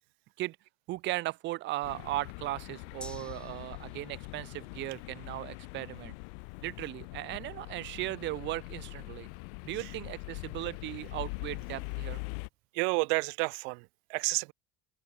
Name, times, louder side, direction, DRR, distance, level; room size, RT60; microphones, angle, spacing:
voice 1, 0.9-6.1 6.6-9.3 9.6-12.2, right 17 dB, 35° right, 0.6 m, -37 dB
sound 1, 1.8-12.5, left 38 dB, 80° left, 1.4 m, -42 dB
Gong, 3.0-10.8 11.1-11.2, left 1 dB, 5° left, 6.6 m, -57 dB
voice 2, 12.7-14.5, right 37 dB, 80° right, 0.6 m, -30 dB
open air
cardioid pair, 175°, 31 cm